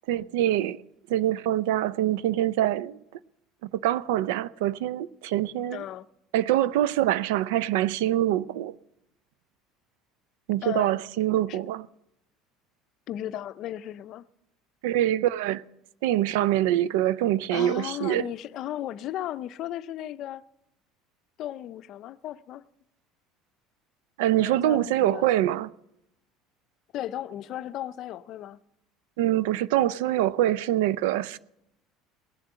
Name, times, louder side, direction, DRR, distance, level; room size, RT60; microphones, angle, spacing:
voice 1, 0.1-0.8 1.1-3.0 3.7-5.8 6.3-8.7 10.5-11.9 14.8-15.6 16.0-18.3 24.2-25.7 29.2-31.4, right 13 dB, 85° right, 0.5 m, -24 dB
voice 2, 5.7-6.1 10.6-10.9 11.5-11.6 13.1-14.2 17.5-20.4 21.4-22.6 24.4-25.3 26.9-28.6, left 12 dB, 55° left, 0.5 m, -35 dB
19.0 x 7.5 x 8.0 m
supercardioid pair, 110°, 0 cm